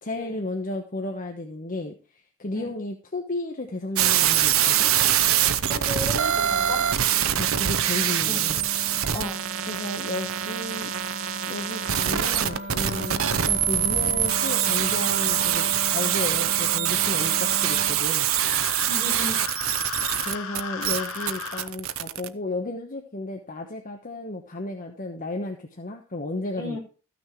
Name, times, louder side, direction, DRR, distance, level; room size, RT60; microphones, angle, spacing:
voice 1, 0.0-4.9 7.4-8.7 9.7-10.9 11.5-18.3 20.2-26.8, left 2 dB, 40° left, 3 dB, 1.1 m, -33 dB
sound 1, 4.0-22.3, right 11 dB, 70° right, 0.7 m, -24 dB
Wind instrument woodwind instrument, 5.1-18.0, equal, 55° right, 1.5 m, -37 dB
voice 2, 5.7-6.8 8.2-8.4 9.1-9.4 18.8-19.4 26.6-26.8, left 1 dB, 10° left, -2 dB, 6.1 m, -34 dB
sound 2, 18.2-21.7, left 5 dB, 85° left, 1.1 m, -35 dB
14.0 x 6.3 x 4.6 m, 0.36 s
head